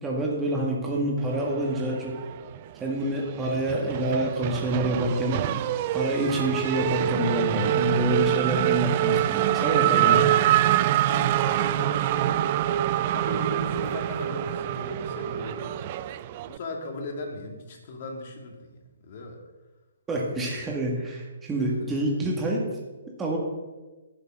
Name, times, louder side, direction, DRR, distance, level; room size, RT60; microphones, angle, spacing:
voice 1, 0.0-2.2 2.8-5.7 5.9-10.3 20.1-22.7 23.2-23.4, right 1 dB, 15° right, -2 dB, 2.0 m, -27 dB
Race car auto racing / Accelerating revving vroom, 1.6-2.6 2.9-16.6, right 13 dB, 40° right, 0.4 m, -25 dB
voice 2, 11.0-12.3 13.0-15.9 16.5-19.4 21.6-21.9, left 2 dB, 45° left, 2 dB, 2.4 m, -38 dB
11.0 x 6.7 x 6.3 m, 1.2 s
figure-of-eight pair, 130°, 0 cm